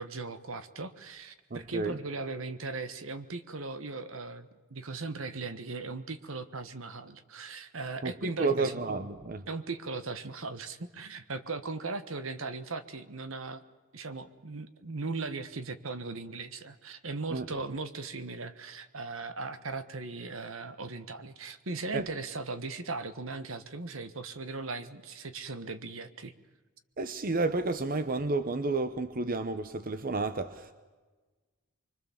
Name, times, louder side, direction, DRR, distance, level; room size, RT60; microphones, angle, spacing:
voice 1, 0.0-8.8 9.5-13.6 13.9-26.3, right 3 dB, 70° right, 11 dB, 1.4 m, -38 dB
voice 2, 1.5-2.0 8.0-9.4 17.3-17.4 21.9-22.0 27.0-30.7, right 3 dB, 40° right, 11 dB, 0.9 m, -31 dB
25.0 x 23.0 x 7.2 m, 1.3 s
head